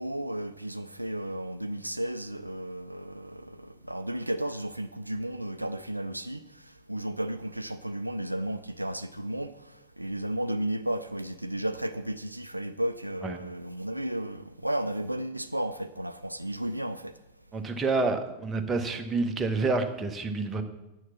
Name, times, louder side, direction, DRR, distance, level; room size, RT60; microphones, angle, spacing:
voice 1, 0.0-6.4 6.9-9.5 10.0-17.1, right 1 dB, 85° right, 0.4 m, -33 dB
voice 2, 17.5-20.6, right 3 dB, 20° right, 1.1 m, -28 dB
9.0 x 6.4 x 7.1 m
figure-of-eight pair, 90°, 0 cm